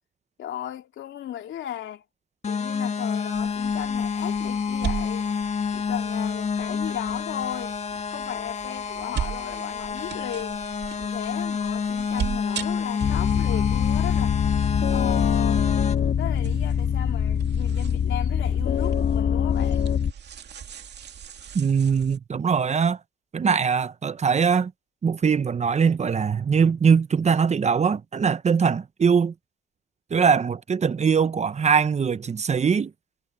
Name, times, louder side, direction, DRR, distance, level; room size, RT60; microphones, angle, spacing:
voice 1, 0.4-2.0 2.5-5.3 5.7-7.8 8.1-10.7 11.0-14.4 14.9-15.6 16.2-19.9, left 11 dB, 75° left, 3.1 m, -36 dB
sound 1, 2.4-15.9, left 6 dB, 35° left, 1.6 m, -28 dB
sound 2, 3.3-22.2, right 8 dB, 60° right, 2.6 m, -39 dB
sound 3, 13.0-20.1, left 8 dB, 55° left, 1.9 m, -24 dB
voice 2, 21.5-23.0 23.3-24.7 25.0-29.3 30.1-32.9, right 6 dB, 35° right, 0.8 m, -21 dB
cardioid pair, 90°, 20 cm